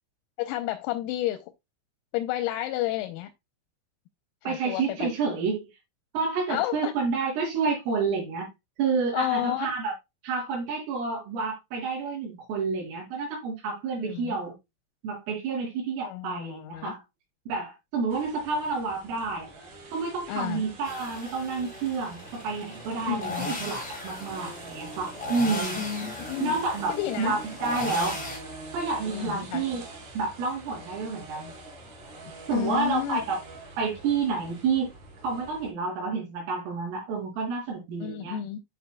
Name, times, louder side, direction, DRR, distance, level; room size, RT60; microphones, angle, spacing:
voice 1, 0.4-1.5 2.1-3.3 4.5-5.1 6.5-6.9 9.1-9.7 14.0-14.4 16.0-16.9 20.3-20.6 23.1-23.5 25.8-26.6 26.9-27.4 29.1-29.6 32.5-33.2 38.0-38.6, left 14 dB, 90° left, 3.5 m, -31 dB
voice 2, 4.4-5.7 6.1-8.5 8.8-9.9 10.2-14.5 15.0-17.0 17.5-19.5 19.9-25.8 26.4-28.2 28.7-29.8 30.1-31.5 32.5-33.4 33.8-34.9 35.2-38.4, right 4 dB, 75° right, 6.5 m, -29 dB
sound 1, 18.1-35.7, right 2 dB, 50° right, 4.2 m, -44 dB
sound 2, 20.8-28.4, left 2 dB, 50° left, 0.4 m, -37 dB
13.0 x 4.5 x 2.3 m
omnidirectional pair, 6.0 m